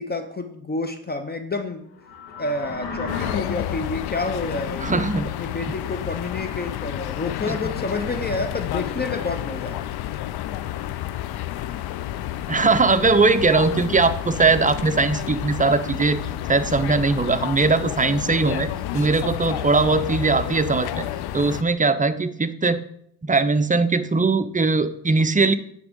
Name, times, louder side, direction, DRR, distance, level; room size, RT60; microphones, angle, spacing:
voice 1, 0.0-1.9 2.4-5.0 5.4-9.9, left 2 dB, 20° left, 7 dB, 0.8 m, -29 dB
sound 1, 1.9-3.3, left 5 dB, 80° left, 1.3 m, -33 dB
sound 2, 3.1-21.6, left 13 dB, 65° left, 0.5 m, -30 dB
voice 2, 4.8-5.3 7.5-7.6 12.5-16.2 16.5-21.0 21.3-22.8 23.2-25.5, right 3 dB, 20° right, 11 dB, 0.6 m, -20 dB
9.4 x 3.6 x 5.2 m, 0.67 s
supercardioid pair, 55°, 43 cm